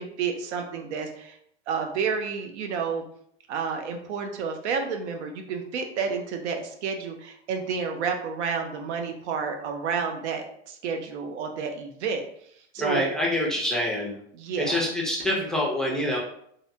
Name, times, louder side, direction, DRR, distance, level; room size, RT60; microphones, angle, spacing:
voice 1, 0.0-1.4 1.7-3.0 3.5-12.2 12.7-13.1 14.3-14.8, right 5 dB, 85° right, 4 dB, 0.6 m, -30 dB
voice 2, 12.8-14.2 14.6-16.2, left 1 dB, ahead, -4 dB, 0.5 m, -26 dB
2.7 x 2.0 x 2.6 m, 0.68 s
supercardioid pair, 120°, 33 cm